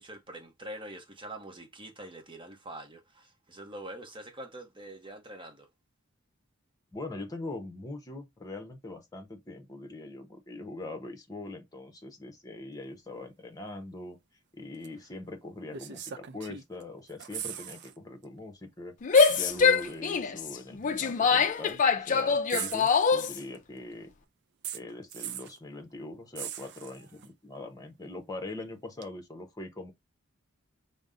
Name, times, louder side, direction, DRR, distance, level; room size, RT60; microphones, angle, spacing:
voice 1, 0.0-5.7, right 1 dB, 25° right, 0.9 m, -44 dB
voice 2, 6.9-14.2 14.5-18.9 19.3-24.1 24.7-29.9, left 2 dB, 20° left, 0.8 m, -42 dB
sound 1, 14.8-15.0 15.7-16.8 17.1-17.9 18.2-18.4 19.1-20.0 21.0-21.1 22.5-23.6 24.6-25.6 26.3-27.3 29.0-29.1, right 9 dB, 55° right, 0.4 m, -40 dB
Female speech woman speaking / Yell, 19.0-23.4, left 5 dB, 40° left, 0.4 m, -24 dB
5.2 x 2.1 x 3.7 m
head